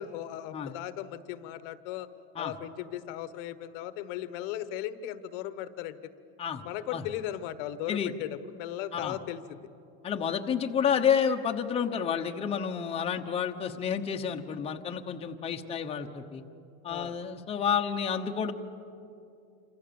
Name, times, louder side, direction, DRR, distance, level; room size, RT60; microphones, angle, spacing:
voice 1, 0.0-2.1 2.4-6.0 6.6-9.6 16.9-17.2, left 12 dB, 65° left, 13 dB, 1.2 m, -37 dB
voice 2, 10.0-16.4 16.8-18.5, left 7 dB, 20° left, 3 dB, 1.1 m, -30 dB
28.0 x 26.0 x 7.0 m, 2.6 s
supercardioid pair, 155°, 30 cm